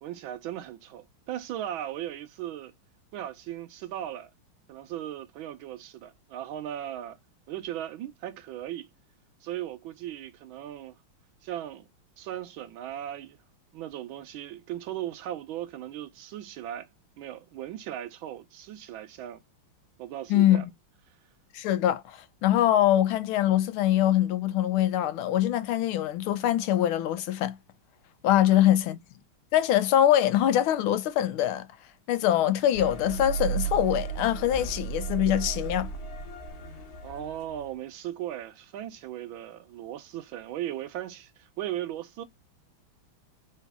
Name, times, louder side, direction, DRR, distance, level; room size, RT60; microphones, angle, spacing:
voice 1, 0.0-2.7 3.1-4.3 4.7-7.2 7.5-8.9 9.4-11.0 11.4-11.9 12.2-13.4 13.7-16.9 17.2-19.4 20.0-20.7 28.4-28.6 37.0-42.2, right 12 dB, 75° right, 1.4 m, -37 dB
voice 2, 20.3-20.7 21.5-27.5 28.2-29.0 29.5-31.7 32.1-35.9, left 12 dB, 85° left, 1.5 m, -23 dB
sound 1, 32.7-37.7, right 6 dB, 50° left, 1.9 m, -34 dB
4.1 x 2.8 x 3.4 m
omnidirectional pair, 2.3 m